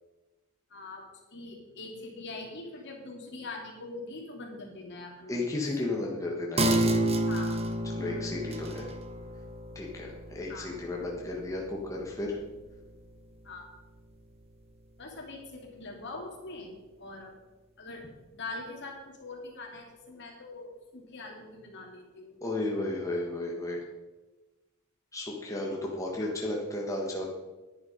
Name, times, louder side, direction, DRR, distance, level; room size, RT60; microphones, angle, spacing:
voice 1, 0.7-1.0 1.3-5.6 7.3-7.6 8.0-8.4 10.5-10.7 13.4-13.7 15.0-16.7 17.0-17.3 17.8-18.0 18.3-22.4 26.2-26.3, left 2 dB, 55° left, 0 dB, 2.8 m, -43 dB
voice 2, 5.3-6.9 7.9-8.9 9.7-12.4 22.4-23.8 25.1-27.3, left 2 dB, 15° left, -2 dB, 1.5 m, -33 dB
sound 1, 6.6-13.6 14.0-14.1, right 1 dB, 30° right, 1.1 m, -31 dB
10.5 x 10.5 x 5.2 m, 1.2 s
head